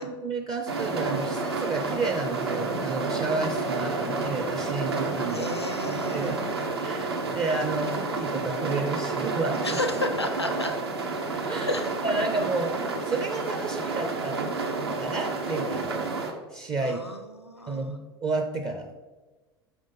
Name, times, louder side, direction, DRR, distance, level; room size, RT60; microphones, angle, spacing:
voice 1, 0.0-6.4 6.7-9.6 11.5-11.7 12.0-14.4 15.0-16.1 16.5-17.2 17.7-18.9, right 3 dB, 30° right, 4 dB, 0.5 m, -31 dB
sound 1, 0.7-16.3, right 3 dB, 75° right, 0.8 m, -30 dB
voice 2, 5.3-6.3 9.6-10.8 11.7-11.9 16.8-18.0, left 2 dB, 90° left, 7 dB, 0.5 m, -32 dB
5.0 x 3.6 x 5.4 m, 1.2 s
figure-of-eight pair, 75°, 13 cm